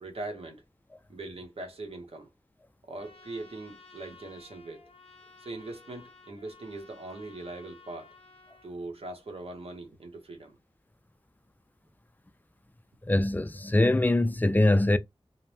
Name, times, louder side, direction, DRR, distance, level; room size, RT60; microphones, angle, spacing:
voice 1, 0.0-0.6 1.1-2.3 2.9-4.9 5.4-8.1 8.6-10.6, right 2 dB, 80° right, 0.8 m, -41 dB
Trumpet, 2.9-8.7, left 4 dB, 85° left, 0.6 m, -54 dB
voice 2, 13.0-15.0, left 1 dB, 20° left, 0.3 m, -23 dB
2.6 x 2.1 x 3.1 m
wide cardioid pair, 55°, 10 cm